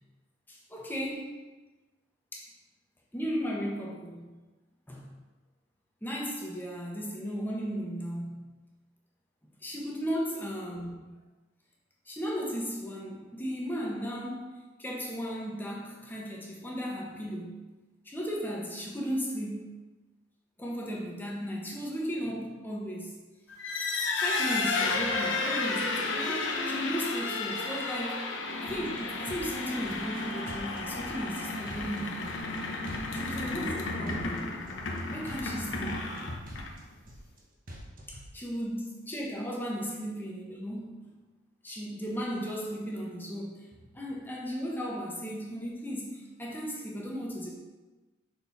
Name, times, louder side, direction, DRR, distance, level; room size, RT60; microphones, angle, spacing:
voice 1, 0.5-1.4 2.3-2.5 3.1-4.3 4.9-5.1 6.0-8.5 9.6-11.2 12.1-17.5 18.0-19.7 20.6-23.1 24.2-32.2 33.1-34.5 35.1-36.0 38.1-41.1 41.6-47.5, equal, 10° left, -3 dB, 1.1 m, -36 dB
sound 1, 23.5-36.9, left 3 dB, 70° left, 0.9 m, -32 dB
sound 2, 28.7-29.0 29.3-30.2 30.5-31.4 31.7-32.6 32.9-33.8 34.1-35.0 35.3-36.2 36.5-37.4 37.7-38.3, equal, 45° right, 1.1 m, -46 dB
6.4 x 4.3 x 4.2 m, 1.2 s
head